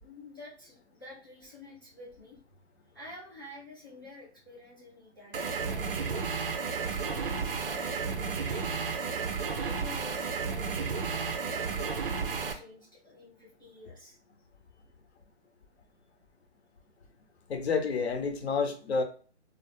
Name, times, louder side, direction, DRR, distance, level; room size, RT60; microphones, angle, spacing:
voice 1, 0.0-2.4 2.9-6.3 6.8-8.8 9.5-14.2, left 2 dB, 20° left, 0.4 m, -49 dB
sound 1, 5.3-12.5, right 5 dB, 50° right, 0.5 m, -32 dB
voice 2, 17.5-19.0, left 5 dB, 65° left, 0.7 m, -29 dB
2.2 x 2.0 x 2.9 m
hypercardioid pair, 145°, 35 cm